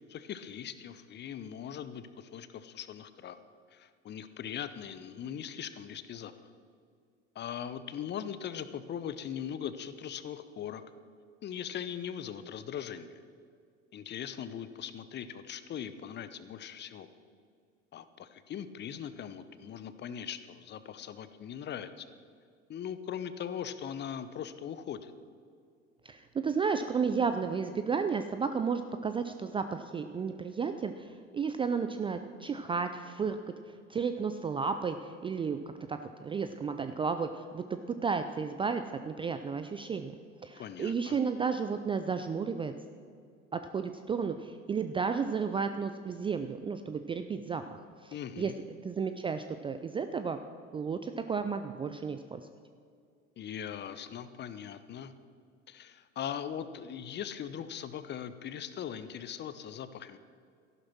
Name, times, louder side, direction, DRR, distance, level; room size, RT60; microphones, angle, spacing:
voice 1, 0.1-3.4 3.7-6.3 7.3-10.8 11.4-13.2 13.9-17.1 17.9-22.1 22.7-25.1 40.6-41.2 48.1-48.5 53.4-55.1 55.7-60.2, left 9 dB, 30° left, 12 dB, 0.9 m, -40 dB
voice 2, 26.0-33.4 33.9-35.6 35.9-40.1 40.4-42.7 43.5-48.5 48.8-50.4 50.7-52.5, right 5 dB, 15° right, 9 dB, 0.4 m, -33 dB
14.0 x 11.5 x 6.1 m, 2.3 s
figure-of-eight pair, 75°, 38 cm